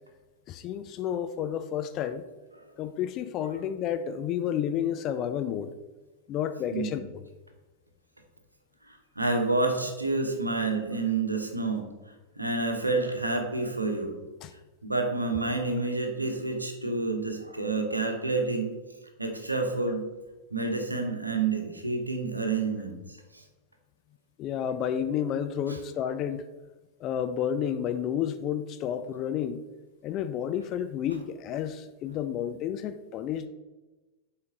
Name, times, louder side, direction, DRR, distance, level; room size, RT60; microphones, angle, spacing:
voice 1, 0.5-2.3 2.8-5.7 6.3-7.0 14.4-14.5 24.4-26.5 27.0-29.6 30.0-33.5, left 9 dB, 35° left, 11 dB, 0.4 m, -31 dB
voice 2, 8.9-11.9 12.4-14.2 14.8-18.8 19.2-20.0 20.5-23.0 23.3-23.4 25.7-25.8, right 3 dB, 85° right, 4 dB, 0.9 m, -29 dB
7.1 x 4.4 x 3.8 m, 1.1 s
figure-of-eight pair, 90°, 0 cm